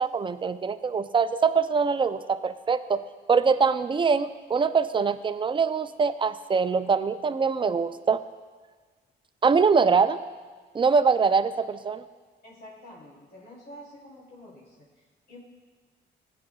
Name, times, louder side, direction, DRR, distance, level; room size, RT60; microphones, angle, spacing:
voice 1, 0.0-3.0 3.3-8.2 9.4-10.2 10.7-12.0, right 5 dB, 25° right, 12 dB, 0.4 m, -23 dB
voice 2, 12.4-15.4, left 1 dB, 55° left, -6 dB, 3.0 m, -48 dB
15.5 x 8.2 x 2.3 m, 1.5 s
cardioid pair, 90°, 20 cm